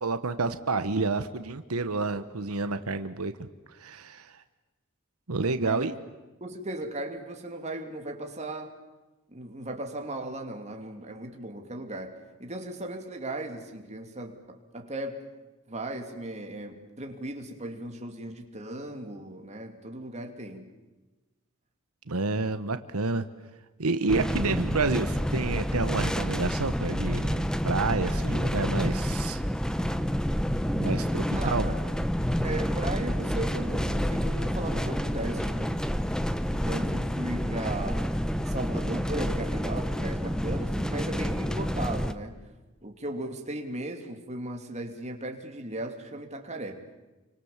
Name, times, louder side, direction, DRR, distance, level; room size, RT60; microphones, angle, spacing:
voice 1, 0.0-4.4 5.3-5.9 22.1-23.2 23.8-29.4 30.7-31.7, right 3 dB, 90° right, 10 dB, 1.1 m, -29 dB
voice 2, 6.4-8.7 9.3-15.3 15.7-20.7 31.4-31.8 32.4-35.7 36.5-38.0 38.4-42.4 42.8-46.8, right 1 dB, 30° right, 4 dB, 2.9 m, -37 dB
sound 1, 24.1-42.1, equal, 5° left, 1.0 m, -29 dB
30.0 x 25.0 x 7.3 m, 1.1 s
head